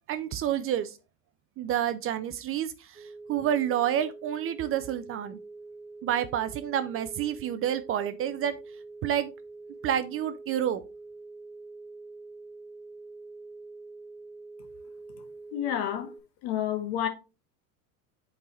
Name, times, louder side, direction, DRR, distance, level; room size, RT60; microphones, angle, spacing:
voice 1, 0.1-1.0 1.6-5.4 6.0-8.6 9.0-9.3 9.8-10.8, right 10 dB, 30° right, 0.4 m, -29 dB
sound 1, 2.9-16.2, right 3 dB, 10° right, 2.6 m, -45 dB
voice 2, 15.5-16.1 16.4-17.1, left 10 dB, 60° left, 1.6 m, -29 dB
8.5 x 3.9 x 3.0 m
supercardioid pair, 105°, 43 cm